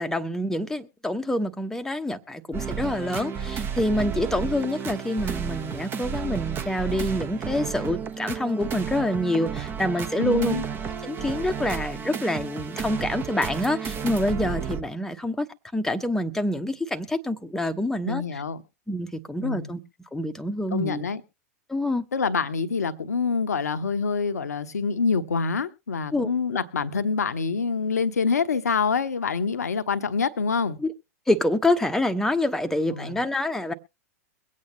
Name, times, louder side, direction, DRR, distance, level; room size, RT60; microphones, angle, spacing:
voice 1, 0.0-10.6 11.0-15.5 15.7-18.4 18.9-19.8 20.1-21.1 21.7-22.0 26.1-26.3 30.8-30.9 31.3-33.7, left 1 dB, 5° left, 1.0 m, -26 dB
sound 1, 2.5-14.8, right 7 dB, 25° right, 1.1 m, -32 dB
voice 2, 10.2-10.6 18.0-18.6 19.4-19.7 20.7-21.2 22.1-30.8 32.9-33.2, left 5 dB, 75° left, 1.0 m, -26 dB
23.0 x 8.6 x 3.1 m
figure-of-eight pair, 95°, 9 cm